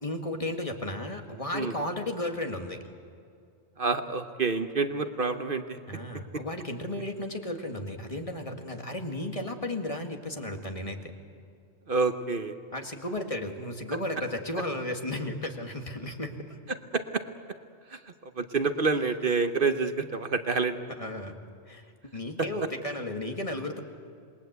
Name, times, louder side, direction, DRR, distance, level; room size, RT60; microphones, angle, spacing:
voice 1, 0.0-2.9 5.9-11.1 12.7-16.6 21.0-21.4 21.7-23.8, left 1 dB, 30° left, 4 dB, 2.0 m, -34 dB
voice 2, 3.8-5.8 11.9-12.6 16.9-17.2 17.9-20.7, right 4 dB, 55° right, 8 dB, 1.1 m, -28 dB
27.5 x 21.0 x 8.1 m, 2.4 s
omnidirectional pair, 1.1 m